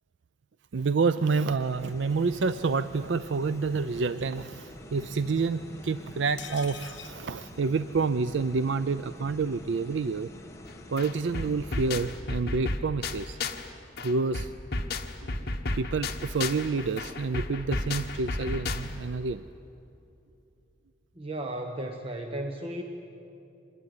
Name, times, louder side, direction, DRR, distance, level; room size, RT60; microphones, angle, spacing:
voice 1, 0.7-10.3 10.9-13.4 14.0-14.5 15.5-19.4, right 4 dB, 70° right, 13 dB, 0.5 m, -28 dB
sound 1, 1.6-12.2, equal, 15° left, 1.4 m, -47 dB
sound 2, 6.4-8.3 8.6-8.7 9.0-9.1, left 9 dB, 70° left, 1.0 m, -46 dB
sound 3, 10.7-10.8 11.0-13.7 14.0-19.1, left 2 dB, 55° left, 1.4 m, -33 dB
voice 2, 21.2-22.8, right 1 dB, 30° right, 4 dB, 1.2 m, -34 dB
25.5 x 20.5 x 9.6 m, 2.8 s
head